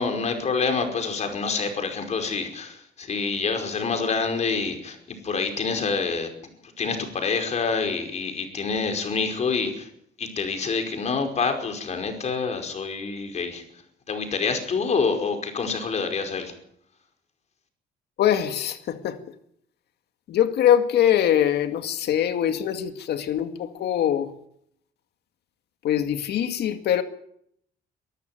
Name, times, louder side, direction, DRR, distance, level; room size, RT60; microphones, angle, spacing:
voice 1, 0.0-6.3 6.6-9.9 10.2-13.6 14.1-16.5, left 4 dB, 40° left, 5.2 m, -27 dB
voice 2, 18.2-19.2 20.3-24.3 25.8-27.0, left 10 dB, 75° left, 2.2 m, -23 dB
24.0 x 13.5 x 9.3 m
cardioid pair, 125°, 17 cm